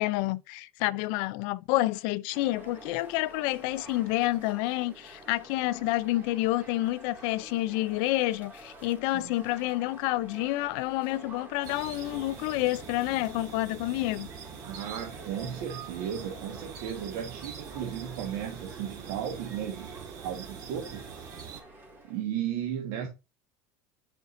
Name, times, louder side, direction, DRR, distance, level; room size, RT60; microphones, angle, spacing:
voice 1, 0.0-14.3, left 17 dB, 65° left, 0.4 m, -29 dB
sound 1, 2.3-22.2, right 1 dB, 20° right, 2.2 m, -49 dB
sound 2, 11.6-21.6, right 7 dB, 45° right, 2.1 m, -44 dB
voice 2, 14.6-20.0 20.2-21.1 22.1-23.1, right 9 dB, 70° right, 1.6 m, -35 dB
9.6 x 5.2 x 2.6 m
supercardioid pair, 135°, 9 cm